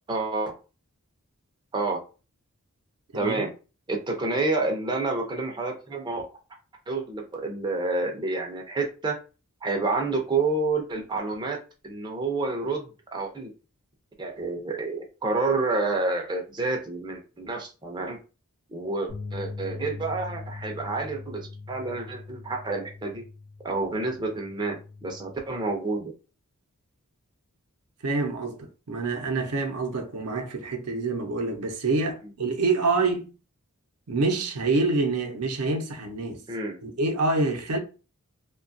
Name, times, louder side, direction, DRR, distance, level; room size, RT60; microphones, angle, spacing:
voice 1, 0.1-0.5 1.7-2.0 3.1-3.5 3.9-6.2 6.9-9.2 9.6-11.6 11.8-13.5 14.2-18.2 18.7-23.2 23.6-26.1 36.5-36.7, right 3 dB, 20° right, 0.4 m, -29 dB
sound 1, 19.1-25.3, left 3 dB, 60° left, 1.0 m, -41 dB
voice 2, 28.0-28.6 28.9-33.3 34.1-36.4 36.8-37.8, right 3 dB, 80° right, 0.6 m, -26 dB
2.7 x 2.3 x 2.5 m
head